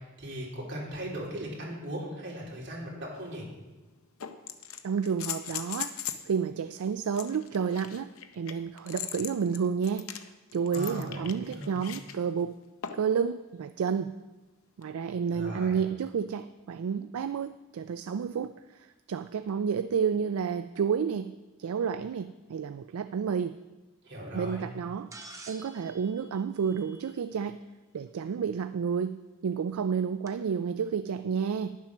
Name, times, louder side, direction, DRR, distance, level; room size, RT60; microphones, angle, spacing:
voice 1, 0.0-3.4 10.7-11.7 15.3-15.8 24.0-24.6, equal, 50° right, -3 dB, 3.3 m, -38 dB
sound 1, 3.1-3.2 4.2-6.3 7.1-12.2 12.8-13.2 14.8-14.9, left 9 dB, 65° left, 0.7 m, -39 dB
voice 2, 4.8-5.9 6.2-10.1 10.5-12.6 12.9-14.2 14.8-23.6 24.3-25.1 25.5-27.6 27.9-31.8, right 6 dB, 70° right, 11 dB, 0.3 m, -30 dB
sound 2, 25.1-27.4 29.0-29.1 30.3-30.4, right 2 dB, 15° right, 0.8 m, -49 dB
10.5 x 7.4 x 6.0 m, 1.2 s
head